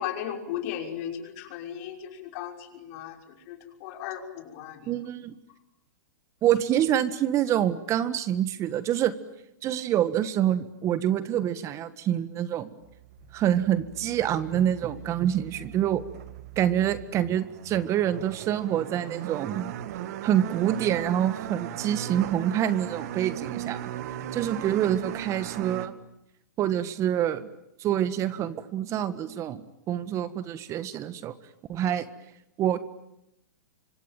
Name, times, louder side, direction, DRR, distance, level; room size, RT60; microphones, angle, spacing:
voice 1, 0.0-3.2 3.5-4.9, left 10 dB, 50° left, 4 dB, 5.9 m, -36 dB
voice 2, 4.9-5.3 6.4-9.1 9.6-12.7 13.3-16.0 16.5-19.7 20.2-23.9 24.3-25.9 26.6-27.5 27.8-31.3 31.7-32.1 32.6-32.8, right 11 dB, 30° right, 14 dB, 1.6 m, -26 dB
sound 1, 12.8-25.9, right 11 dB, 60° right, 2.1 m, -38 dB
25.5 x 25.5 x 9.2 m, 0.83 s
hypercardioid pair, 125°, 10 cm